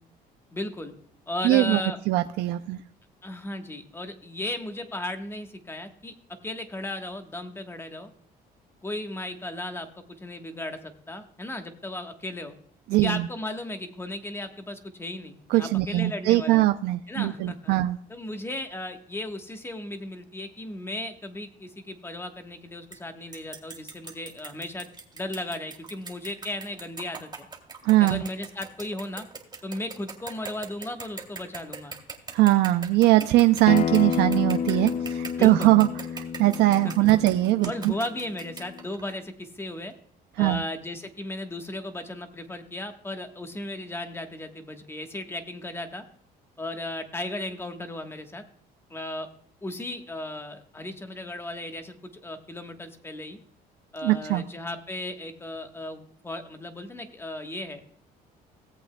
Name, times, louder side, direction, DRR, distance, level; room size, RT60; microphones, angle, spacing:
voice 1, 0.5-0.9 1.3-2.0 3.2-6.1 6.4-8.1 8.8-12.5 13.0-16.7 17.1-17.8 18.1-27.3 28.0-29.2 29.6-31.9 35.3-35.8 36.8-37.1 37.7-39.9 40.4-46.0 46.6-48.4 48.9-49.3 49.6-53.4 53.9-57.8, left 1 dB, 15° left, 6 dB, 1.2 m, -35 dB
voice 2, 1.4-1.8 2.1-2.8 12.9-13.3 15.5-18.0 27.8-28.2 32.3-35.9 36.2-37.9 40.4-40.6 54.0-54.4, right 16 dB, 80° right, 9 dB, 0.5 m, -21 dB
sound 1, 22.9-23.0 23.3-39.2, right 4 dB, 25° right, 2.3 m, -41 dB
Acoustic guitar, 33.7-38.9, left 7 dB, 40° left, 0.5 m, -30 dB
18.0 x 8.0 x 2.2 m, 0.64 s
cardioid pair, 110°, 17 cm